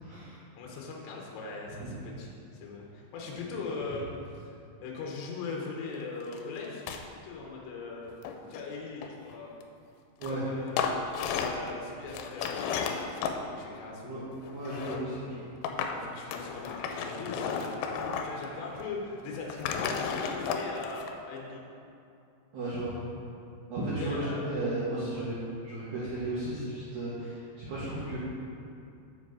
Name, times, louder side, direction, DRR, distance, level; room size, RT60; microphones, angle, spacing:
voice 1, 0.0-0.3 1.7-1.9 10.2-10.4 14.0-15.5 22.5-23.0 23.7-25.4 25.6-28.2, right 1 dB, 75° right, -10 dB, 1.7 m, -34 dB
voice 2, 0.6-4.1 4.3-4.5 4.8-8.1 8.5-9.5 10.3-11.0 11.4-14.3 15.3-15.4 15.9-17.8 18.2-21.6 24.0-24.5 25.1-25.2, left 4 dB, 75° left, -2 dB, 2.9 m, -40 dB
sound 1, 6.3-6.4 6.6-7.0 8.1-9.3 10.2-10.4 10.7-11.7 12.1-13.4 14.3-15.0 15.6-16.0 16.3-18.5 18.7-18.8 19.3-21.1, left 6 dB, 90° left, 3.1 m, -33 dB
7.5 x 5.0 x 6.1 m, 2.6 s
omnidirectional pair, 5.5 m